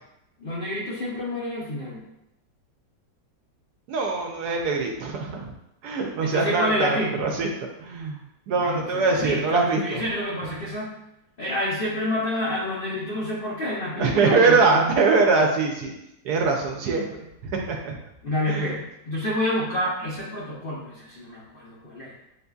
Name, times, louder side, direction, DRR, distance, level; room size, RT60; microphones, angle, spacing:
voice 1, 0.4-2.0 6.2-7.3 8.6-10.9 11.4-14.9 18.2-18.8 19.1-22.1, left 1 dB, 80° left, -6 dB, 0.5 m, -28 dB
voice 2, 3.9-5.5 5.8-7.5 7.8-10.0 14.0-15.9 16.2-17.9 18.5-18.7, right 4 dB, 70° right, 1 dB, 1.0 m, -23 dB
6.6 x 2.6 x 2.3 m, 0.85 s
omnidirectional pair, 2.0 m